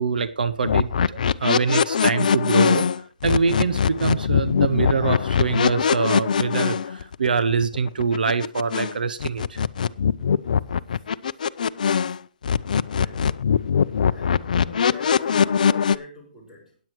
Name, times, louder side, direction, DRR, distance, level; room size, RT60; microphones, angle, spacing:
voice 1, 0.0-2.8 3.2-9.6, right 5 dB, 80° right, 0.7 m, -24 dB
sound 1, 0.6-8.9 9.2-12.2 12.4-16.0, left 7 dB, 65° left, 0.5 m, -21 dB
voice 2, 10.7-11.1 12.0-12.2 12.9-13.5 14.0-16.8, left 2 dB, 10° right, 4.9 m, -45 dB
17.0 x 9.3 x 3.1 m
hypercardioid pair, 160°, 5 cm